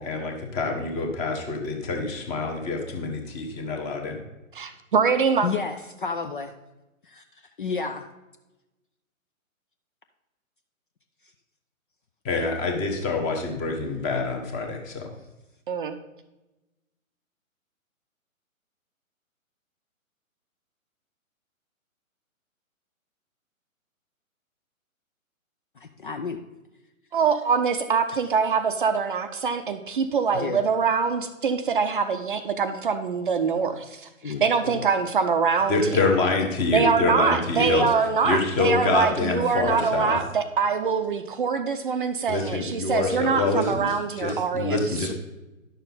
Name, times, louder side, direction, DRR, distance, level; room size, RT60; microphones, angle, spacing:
voice 1, 0.0-4.2 12.2-15.1 35.7-37.9 38.2-40.2 42.3-43.8 44.2-45.1, left 3 dB, 15° left, 3 dB, 1.1 m, -26 dB
voice 2, 4.5-5.5 15.7-16.0 27.1-35.9 36.7-44.8, right 5 dB, 40° right, 8 dB, 0.6 m, -24 dB
voice 3, 5.4-6.5 7.0-7.2 7.6-8.1 26.0-26.4 30.3-30.6 34.2-34.8, left 5 dB, 40° left, 7 dB, 0.5 m, -31 dB
10.5 x 6.7 x 4.0 m, 1.0 s
figure-of-eight pair, 140°, 42 cm